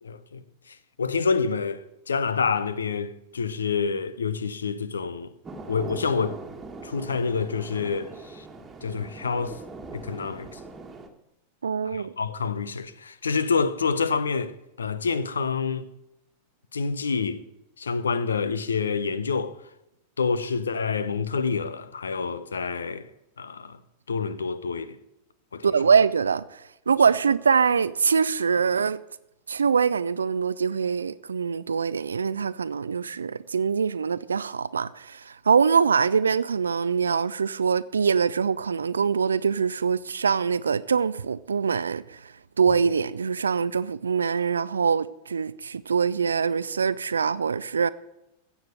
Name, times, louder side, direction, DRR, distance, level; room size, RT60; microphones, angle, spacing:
voice 1, 0.0-5.3 5.7-6.4 6.8-8.5 8.8-9.6 9.9-10.6 11.8-15.8 16.7-17.4 17.8-19.5 20.2-23.1 23.4-23.8 24.1-25.0 25.5-25.7, left 5 dB, 70° left, 0.7 m, -28 dB
sound 1, 5.4-11.1, right 3 dB, 15° right, 1.7 m, -41 dB
voice 2, 11.6-12.1 25.6-29.0 29.5-42.3 42.6-47.9, right 6 dB, 70° right, 0.4 m, -24 dB
15.5 x 7.1 x 6.5 m
figure-of-eight pair, 90°, 0 cm